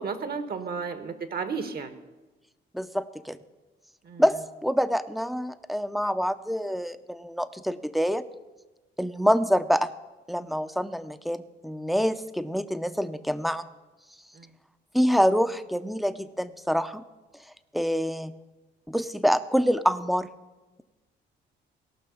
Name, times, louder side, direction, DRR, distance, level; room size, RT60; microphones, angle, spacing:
voice 1, 0.0-2.0 4.0-4.2 14.3-14.5, right 5 dB, 50° right, 10 dB, 1.4 m, -33 dB
voice 2, 2.7-3.4 4.2-8.2 9.0-9.9 10.3-13.6 14.9-17.0 17.7-18.3 18.9-20.3, equal, ahead, 12 dB, 0.6 m, -26 dB
17.5 x 5.9 x 7.1 m, 1.2 s
cardioid pair, 90°, 20 cm